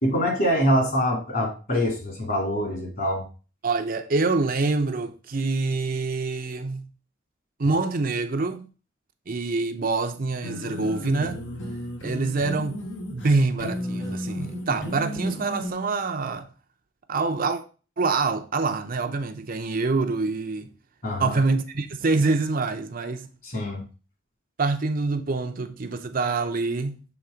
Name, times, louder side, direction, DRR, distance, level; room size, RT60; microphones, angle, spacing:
voice 1, 0.0-3.2 21.0-21.4 23.4-23.8, equal, 50° left, 2.6 m, -24 dB
voice 2, 3.6-6.9 7.6-8.7 9.3-11.4 12.0-16.5 17.1-17.6 18.0-20.7 21.2-23.3 24.6-27.0, right 3 dB, 50° right, 0.6 m, -26 dB
sound 1, 10.4-15.7, equal, 70° left, 1.3 m, -33 dB
7.0 x 3.7 x 4.9 m
head